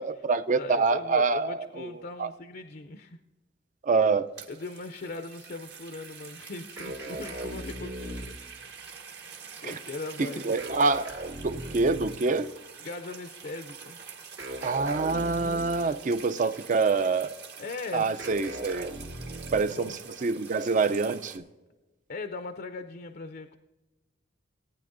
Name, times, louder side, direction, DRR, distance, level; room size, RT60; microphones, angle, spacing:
voice 1, 0.0-2.3 3.8-4.3 9.6-9.8 10.2-11.1 11.4-12.5 14.6-17.4 17.9-18.9 19.5-21.4, right 4 dB, 40° right, 0.5 m, -26 dB
voice 2, 0.6-3.2 4.5-8.6 9.6-10.6 12.8-14.0 17.6-18.2 19.6-20.0 22.1-23.6, left 3 dB, 50° left, 0.5 m, -39 dB
sound 1, 4.1-21.4, right 6 dB, 60° right, 1.4 m, -46 dB
sound 2, 6.8-8.5 10.6-12.2 14.4-15.9 18.2-19.8, right 1 dB, 85° right, 2.8 m, -38 dB
18.5 x 9.4 x 2.6 m
head